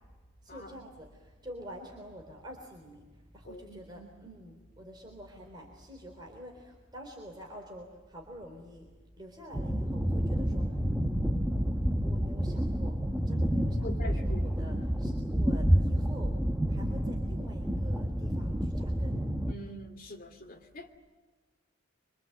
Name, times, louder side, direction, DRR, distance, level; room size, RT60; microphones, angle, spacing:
voice 1, 0.4-8.9 9.2-10.8 12.0-13.0 13.3-16.4 16.7-19.2, equal, 25° right, 0 dB, 3.8 m, -47 dB
voice 2, 3.4-4.1 13.8-14.4 19.5-20.9, left 1 dB, 45° left, 4 dB, 2.8 m, -44 dB
sound 1, 9.5-19.5, equal, 5° right, 1.2 m, -29 dB
26.0 x 25.5 x 8.0 m, 1.4 s
head